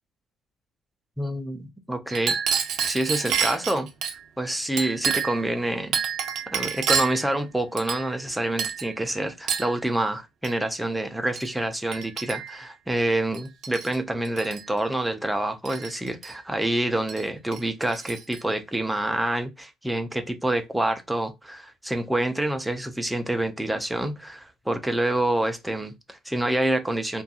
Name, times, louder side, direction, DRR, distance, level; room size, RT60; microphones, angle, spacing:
voice 1, 1.2-2.4 2.9-3.9 4.4-6.0 6.5-27.2, right 1 dB, 5° right, 0.4 m, -27 dB
Chink clink, 2.1-4.2 4.8-5.4 5.9-7.2 7.8-8.3 8.6-8.9 9.5-9.7 10.4-10.6 11.4-11.5 11.9-12.6 13.3-13.9 14.2-14.6 15.6-16.3 17.1-17.2 17.5-18.4, right 7 dB, 55° right, 0.6 m, -28 dB
2.3 x 2.2 x 2.7 m
cardioid pair, 155°, 0 cm